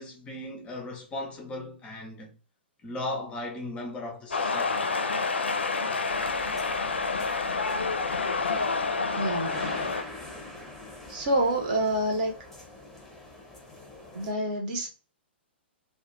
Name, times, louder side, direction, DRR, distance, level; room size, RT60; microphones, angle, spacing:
voice 1, 0.0-2.4 2.8-4.9, left 1 dB, 15° left, 0.5 m, -37 dB
sound 1, 4.3-10.0, left 4 dB, 75° left, 0.4 m, -28 dB
sound 2, 6.1-14.3, left 2 dB, ahead, 0.8 m, -44 dB
voice 2, 9.2-9.6 11.1-12.3 14.1-15.0, right 1 dB, 45° right, 0.8 m, -27 dB
2.3 x 2.2 x 3.0 m
figure-of-eight pair, 115°, 6 cm